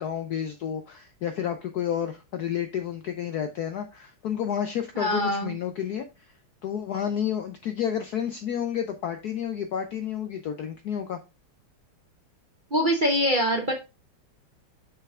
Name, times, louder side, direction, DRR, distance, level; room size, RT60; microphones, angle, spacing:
voice 1, 0.0-6.1 6.6-11.2, left 9 dB, 70° left, 8 dB, 0.9 m, -30 dB
voice 2, 5.0-5.5 12.7-13.7, equal, 35° right, 2 dB, 0.8 m, -24 dB
6.5 x 5.8 x 3.6 m, 0.26 s
omnidirectional pair, 2.3 m